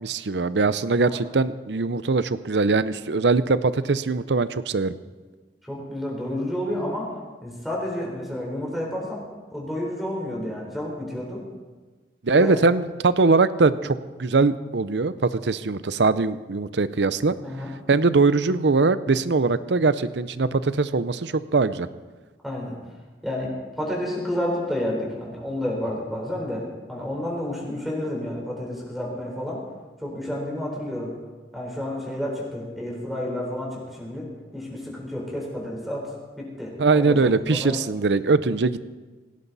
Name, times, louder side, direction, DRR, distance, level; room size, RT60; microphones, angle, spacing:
voice 1, 0.0-4.9 12.2-17.4 17.9-21.9 36.8-38.8, right 3 dB, 80° right, 14 dB, 0.7 m, -21 dB
voice 2, 5.6-7.1 7.4-9.2 9.5-11.4 12.3-12.6 17.4-17.7 22.4-22.8 23.2-23.5 23.8-29.6 30.0-31.1 31.5-36.1 36.4-37.2 37.5-37.8, left 1 dB, ahead, -3 dB, 3.9 m, -30 dB
18.0 x 17.0 x 4.1 m, 1.3 s
head